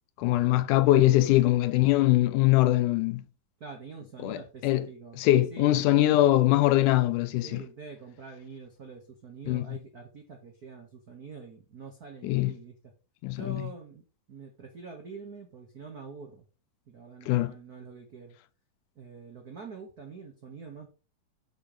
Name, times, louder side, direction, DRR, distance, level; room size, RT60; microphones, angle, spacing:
voice 1, 0.2-3.2 4.2-4.9 5.2-7.6 9.5-9.8 12.2-12.5 13.2-13.6 17.3-17.5, left 15 dB, 80° left, 2.0 m, -22 dB
voice 2, 3.6-5.8 7.4-12.8 13.3-16.4 16.9-18.4 18.9-20.9, right 5 dB, 85° right, 0.8 m, -45 dB
6.4 x 6.0 x 4.9 m
omnidirectional pair, 3.8 m